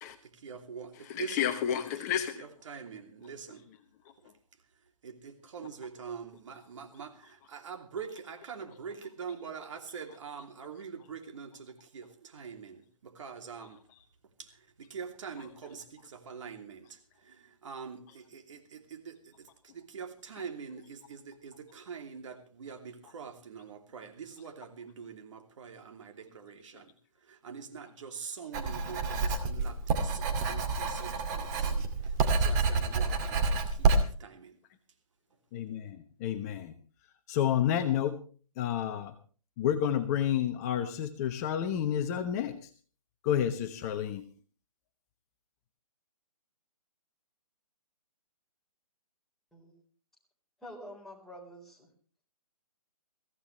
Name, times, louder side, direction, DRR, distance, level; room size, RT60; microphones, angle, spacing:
voice 1, 0.2-3.7 4.2-4.3 5.0-13.8 14.4-26.9 27.2-34.6, right 6 dB, 55° right, 5 dB, 2.9 m, -44 dB
voice 2, 1.1-2.4 35.5-36.7 37.3-38.2 38.6-39.1 39.6-42.5 43.2-44.2, left 10 dB, 25° left, 7 dB, 1.1 m, -30 dB
Writing, 28.5-34.0, right 4 dB, 30° right, 2.3 m, -28 dB
voice 3, 50.6-51.9, equal, ahead, -4 dB, 4.1 m, -47 dB
22.5 x 15.5 x 3.2 m, 0.39 s
hypercardioid pair, 145°, 19 cm